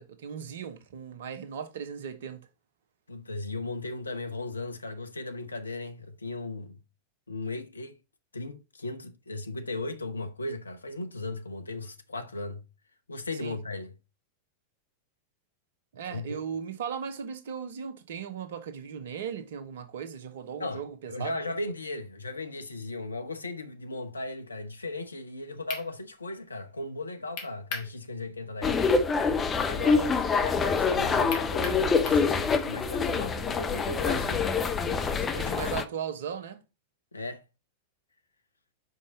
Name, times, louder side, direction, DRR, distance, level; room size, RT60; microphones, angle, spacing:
voice 1, 0.0-2.5 13.4-13.6 15.9-21.3 35.4-36.6, right 7 dB, 60° right, 0.9 m, -37 dB
voice 2, 3.1-6.8 7.3-8.0 8.3-12.6 13.1-13.9 16.1-16.4 20.6-20.8 21.1-29.0 29.6-31.8 32.0-34.6 34.8-35.7 37.1-37.4, left 2 dB, 80° left, 0.8 m, -37 dB
sound 1, 25.3-25.4 25.7-25.9 27.4-27.9 28.3-28.4 31.3-32.3, left 5 dB, 45° left, 1.7 m, -36 dB
sound 2, 28.6-35.8, left 5 dB, 20° left, 0.7 m, -26 dB
5.3 x 5.3 x 3.9 m
figure-of-eight pair, 90°, 0 cm